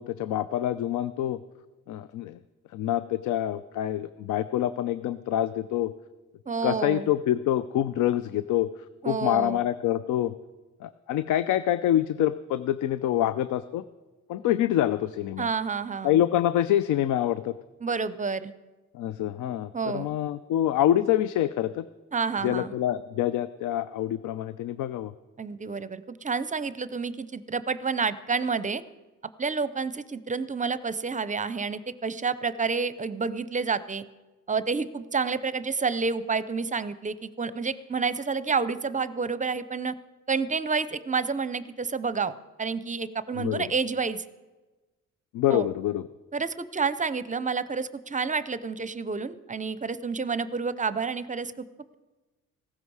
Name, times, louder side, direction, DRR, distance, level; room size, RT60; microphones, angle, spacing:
voice 1, 0.0-1.4 1.9-2.4 2.7-5.9 6.6-8.7 9.0-10.3 10.8-13.8 14.3-15.5 16.0-17.5 18.9-21.9 22.4-25.1 43.4-43.7 45.3-46.1, left 12 dB, 80° left, 14 dB, 0.5 m, -26 dB
voice 2, 6.5-7.1 9.0-9.6 15.4-16.2 17.8-18.5 19.7-20.2 22.1-22.7 25.4-28.8 29.4-34.0 34.5-39.9 40.3-42.3 42.6-44.2 45.5-45.7 46.3-51.7, right 5 dB, 25° right, 15 dB, 0.6 m, -29 dB
16.0 x 13.5 x 4.8 m, 1.2 s
cardioid pair, 90°, 30 cm